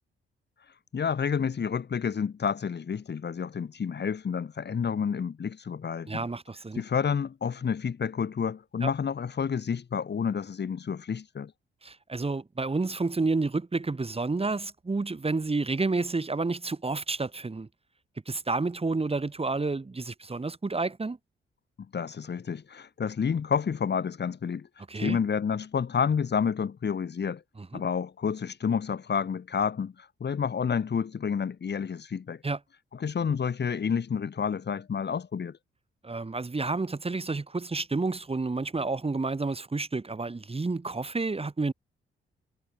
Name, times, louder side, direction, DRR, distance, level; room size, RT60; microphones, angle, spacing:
voice 1, 0.9-6.2 6.8-11.5 21.9-24.7 25.0-27.4 27.7-32.4 33.0-35.6, left 6 dB, 55° left, 3.2 m, -29 dB
voice 2, 6.1-6.8 8.8-8.9 11.8-17.7 18.3-21.2 24.9-25.2 27.6-27.8 32.4-32.6 36.0-41.7, right 3 dB, 30° right, 3.8 m, -30 dB
cardioid pair, 75°, 21 cm